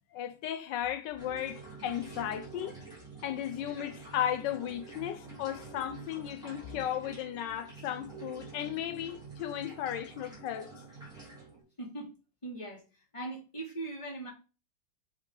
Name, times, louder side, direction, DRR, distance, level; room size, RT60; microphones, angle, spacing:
voice 1, 0.1-2.7 3.2-10.8, left 11 dB, 80° left, 1.2 m, -35 dB
sound 1, 1.2-11.6, right 3 dB, ahead, 3.6 m, -47 dB
voice 2, 12.4-12.8 13.1-14.3, right 2 dB, 15° left, 2.1 m, -39 dB
7.3 x 3.8 x 3.8 m
omnidirectional pair, 1.9 m